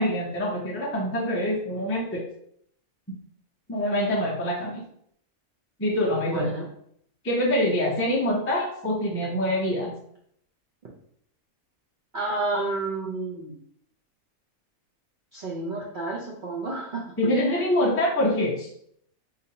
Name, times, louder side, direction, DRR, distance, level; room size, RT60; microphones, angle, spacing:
voice 1, 0.0-2.2 3.7-4.8 5.8-6.5 7.2-9.9 17.2-18.7, left 1 dB, 20° left, -3 dB, 0.4 m, -25 dB
voice 2, 6.3-6.6 12.1-13.6 15.3-17.0, right 2 dB, 50° right, -4 dB, 0.6 m, -30 dB
4.0 x 2.8 x 2.8 m, 0.68 s
omnidirectional pair, 1.5 m